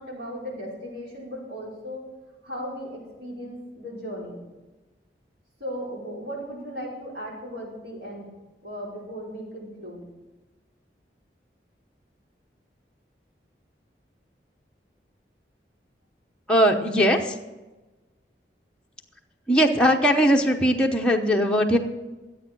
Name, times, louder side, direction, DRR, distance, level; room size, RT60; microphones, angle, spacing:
voice 1, 0.0-2.1 2.4-4.4 5.6-8.3 8.6-10.0, equal, 70° right, -5 dB, 5.1 m, -36 dB
voice 2, 16.5-17.4 19.5-21.8, equal, 5° left, 0 dB, 0.9 m, -20 dB
13.0 x 8.5 x 6.2 m, 1.2 s
head